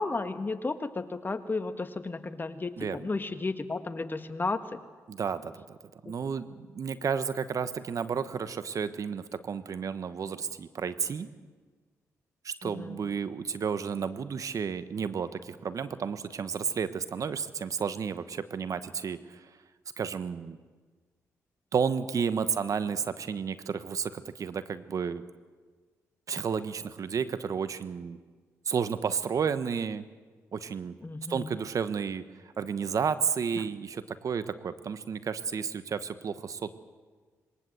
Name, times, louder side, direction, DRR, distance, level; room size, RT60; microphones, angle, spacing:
voice 1, 0.0-4.8 12.6-13.0 31.0-31.5, left 3 dB, 30° left, 9 dB, 1.6 m, -33 dB
voice 2, 2.8-3.1 5.1-5.8 6.0-11.3 12.4-19.5 20.0-20.6 21.7-25.2 26.3-28.2 28.6-30.0 30.5-31.0 31.3-32.2 32.6-36.7, right 6 dB, 60° right, 12 dB, 1.1 m, -32 dB
21.5 x 18.5 x 7.8 m, 1.4 s
supercardioid pair, 55°, 6 cm